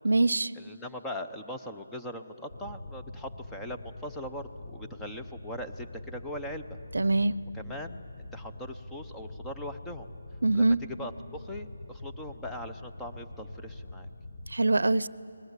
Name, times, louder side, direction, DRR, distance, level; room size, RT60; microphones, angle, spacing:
voice 1, 0.0-0.5 6.9-7.4 10.4-10.8 14.5-15.1, right 2 dB, 85° right, 19 dB, 0.7 m, -23 dB
voice 2, 0.6-6.8 7.5-8.0 8.3-10.1 10.5-14.1, equal, 5° left, 3 dB, 0.6 m, -40 dB
sound 1, 2.5-14.6, left 2 dB, 40° left, 1.3 m, -44 dB
29.5 x 20.5 x 8.2 m, 2.9 s
figure-of-eight pair, 170°, 0 cm